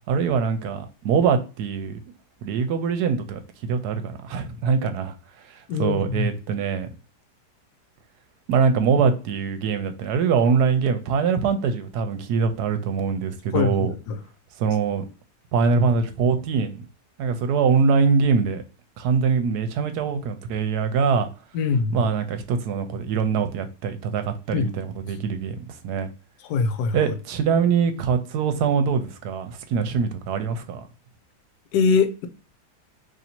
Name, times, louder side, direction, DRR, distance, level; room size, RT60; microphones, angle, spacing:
voice 1, 0.1-2.0 2.4-5.1 5.8-6.9 8.5-13.9 14.6-15.1 15.5-16.8 17.2-18.6 19.0-21.3 21.9-26.1 26.9-30.9, right 5 dB, 80° right, 1.1 m, -23 dB
voice 2, 5.7-6.3 13.5-13.9 21.5-22.1 24.5-24.7 26.5-27.0 31.7-32.3, left 5 dB, 80° left, 1.1 m, -22 dB
2.9 x 2.7 x 4.3 m
omnidirectional pair, 1.7 m